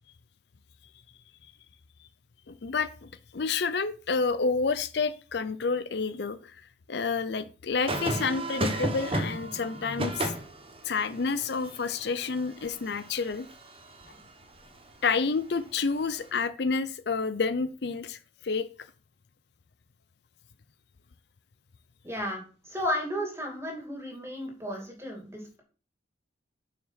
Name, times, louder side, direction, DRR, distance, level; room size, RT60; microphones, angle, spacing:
voice 1, 2.5-6.6 6.9-10.3 10.8-13.5 15.0-18.7, left 4 dB, 60° left, 12 dB, 0.5 m, -29 dB
sound 1, 7.9-14.2 16.0-16.3, right 1 dB, 30° right, 1.0 m, -34 dB
voice 2, 22.0-25.6, equal, 15° right, 1 dB, 2.6 m, -34 dB
7.5 x 5.8 x 5.7 m, 0.38 s
head